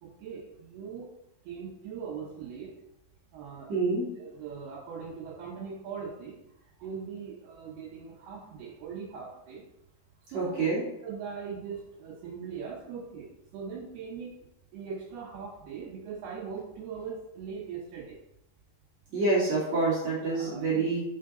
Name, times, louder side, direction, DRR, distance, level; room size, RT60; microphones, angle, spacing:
voice 1, 0.0-1.1 1.4-2.7 3.3-3.7 4.2-6.4 6.8-9.6 10.3-10.6 11.0-14.3 14.7-18.2 20.3-20.8, right 6 dB, 80° right, -6 dB, 3.1 m, -40 dB
voice 2, 3.7-4.1 10.3-10.8 19.1-21.0, right 3 dB, 55° right, -8 dB, 2.4 m, -27 dB
5.9 x 4.3 x 3.8 m, 0.85 s
omnidirectional pair, 4.5 m